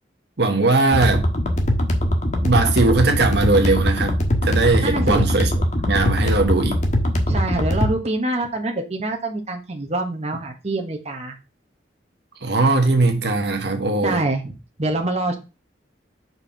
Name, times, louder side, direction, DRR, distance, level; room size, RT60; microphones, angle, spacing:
voice 1, 0.4-1.3 2.4-5.5 5.9-6.8 12.4-14.2, right 3 dB, 60° right, 1.2 m, -19 dB
sound 1, 0.9-7.9, equal, 40° left, 1.4 m, -21 dB
voice 2, 4.8-5.2 7.3-11.3 14.0-14.4 14.8-15.4, right 2 dB, 35° right, 1.2 m, -25 dB
5.4 x 4.6 x 5.7 m
head